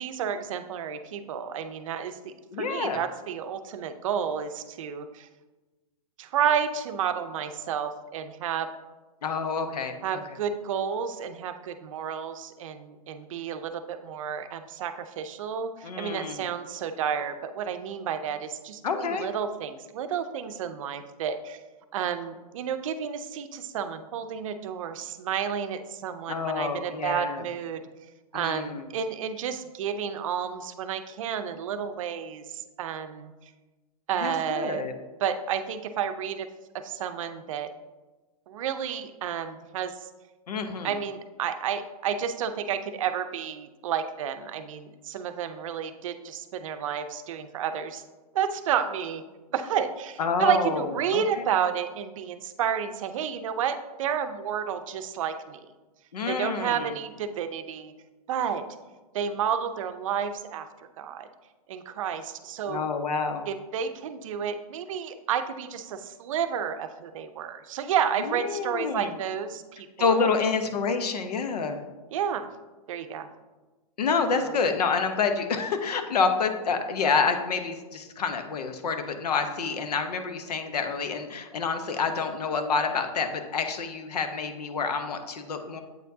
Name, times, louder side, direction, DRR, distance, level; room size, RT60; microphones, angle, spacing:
voice 1, 0.0-5.3 6.2-8.7 10.0-21.6 21.9-27.8 28.3-33.3 34.1-34.8 35.2-36.5 36.8-37.7 38.5-40.1 40.8-48.0 48.3-49.2 49.5-55.6 56.3-57.9 58.3-58.6 59.1-60.7 61.0-61.3 61.7-62.9 63.5-70.3 72.1-72.5 72.9-73.3 74.3-74.6, right 8 dB, 55° right, 9 dB, 0.5 m, -31 dB
voice 2, 2.5-3.0 9.2-10.2 15.8-16.4 18.8-19.3 26.3-27.4 28.3-28.9 34.2-34.9 40.5-40.9 50.2-51.4 56.1-56.9 62.7-63.4 68.3-69.1 70.0-71.8 74.0-85.8, left 5 dB, 85° left, 7 dB, 0.8 m, -28 dB
8.0 x 4.4 x 2.7 m, 1.2 s
hypercardioid pair, 145°, 20 cm